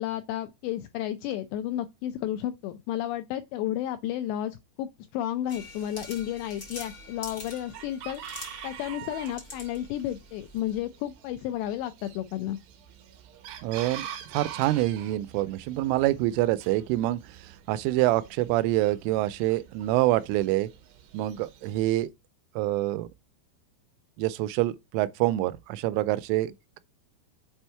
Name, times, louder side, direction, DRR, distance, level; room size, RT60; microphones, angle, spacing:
voice 1, 0.0-8.2 8.6-12.6, left 12 dB, 85° left, 2.5 m, -32 dB
sound 1, 5.5-10.8, left 3 dB, 55° left, 1.0 m, -45 dB
Chicken rooster, 5.5-22.1, right 10 dB, 70° right, 3.1 m, -46 dB
voice 2, 13.6-17.3 17.7-20.7 21.1-22.1 22.6-23.1 24.2-26.8, right 16 dB, 90° right, 3.1 m, -26 dB
7.5 x 4.4 x 4.4 m
omnidirectional pair, 5.6 m